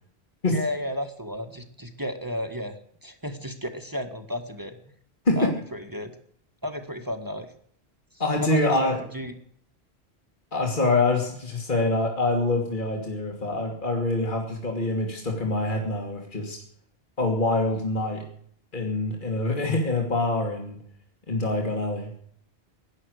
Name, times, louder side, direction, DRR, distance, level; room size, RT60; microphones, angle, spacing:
voice 1, 0.5-4.8 5.4-6.1 6.6-7.5 8.4-9.3, left 1 dB, 20° right, 6 dB, 1.7 m, -33 dB
voice 2, 8.2-9.0 10.5-16.6 17.2-18.2 18.7-20.8 21.3-22.1, left 2 dB, 50° left, 1 dB, 2.8 m, -25 dB
17.5 x 11.5 x 6.5 m, 0.64 s
omnidirectional pair, 1.1 m